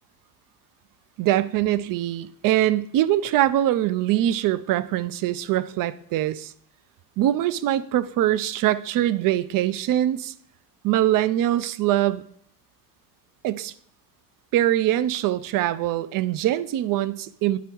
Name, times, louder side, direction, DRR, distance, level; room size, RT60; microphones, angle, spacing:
voice 1, 1.2-6.5 7.2-10.3 10.8-12.2 13.4-13.7 14.5-17.6, right 13 dB, 50° right, 16 dB, 0.4 m, -23 dB
10.0 x 3.4 x 4.5 m, 0.63 s
cardioid pair, 140°, 43 cm